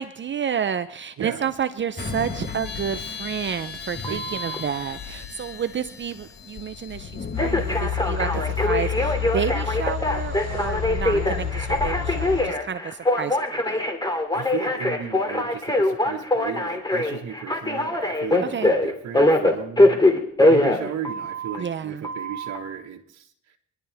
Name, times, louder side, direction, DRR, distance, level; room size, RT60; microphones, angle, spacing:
voice 1, 0.0-13.8 18.5-18.7 21.6-22.0, right 8 dB, 40° right, 12 dB, 0.6 m, -30 dB
voice 2, 1.2-1.5 4.1-4.5 8.3-8.4 11.1-11.6 14.3-20.0 20.4-23.6, right 8 dB, 60° right, 1 dB, 1.6 m, -35 dB
sound 1, 2.0-7.8, left 5 dB, 35° left, 2.0 m, -36 dB
Telephone, 4.0-4.6 7.4-21.6 22.0-22.6, left 1 dB, 15° left, 2.7 m, -22 dB
sound 2, 7.3-12.4, left 8 dB, 55° left, 4.9 m, -29 dB
27.0 x 11.5 x 3.5 m, 0.71 s
cardioid pair, 90°, 30 cm